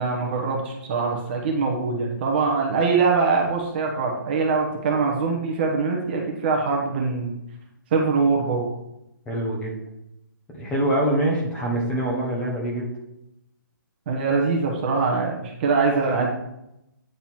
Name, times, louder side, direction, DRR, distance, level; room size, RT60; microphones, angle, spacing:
voice 1, 0.0-7.3 7.9-8.7 14.1-16.3, right 4 dB, 30° right, 0 dB, 1.2 m, -23 dB
voice 2, 9.2-9.8 10.5-12.9, right 1 dB, 10° left, -3 dB, 1.3 m, -24 dB
9.1 x 4.0 x 4.5 m, 0.84 s
hypercardioid pair, 160°, 11 cm